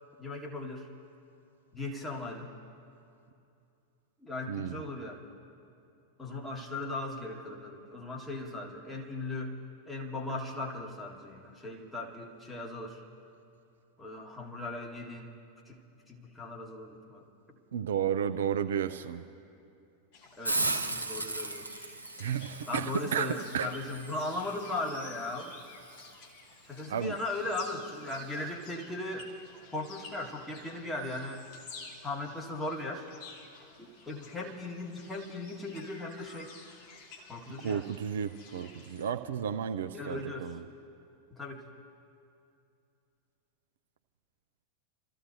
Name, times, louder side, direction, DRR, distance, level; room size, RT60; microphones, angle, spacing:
voice 1, 0.2-0.9 1.7-2.5 4.2-5.3 6.2-9.5 9.8-13.0 14.0-15.3 15.6-15.8 16.1-17.3 20.3-21.7 22.7-25.6 26.6-29.3 29.7-31.5 32.0-33.0 33.8-36.5 37.3-37.8 39.9-40.5 41.3-41.6, left 2 dB, 10° left, -2 dB, 1.7 m, -38 dB
voice 2, 4.5-4.8 17.7-19.2 22.2-23.7 26.9-27.2 37.6-40.6, right 8 dB, 60° right, 8 dB, 0.5 m, -32 dB
sound 1, 20.1-39.1, left 4 dB, 45° left, 2.0 m, -52 dB
Hiss, 20.4-26.1, right 2 dB, 80° right, 0.8 m, -37 dB
28.5 x 14.0 x 2.7 m, 2.6 s
figure-of-eight pair, 90°, 0 cm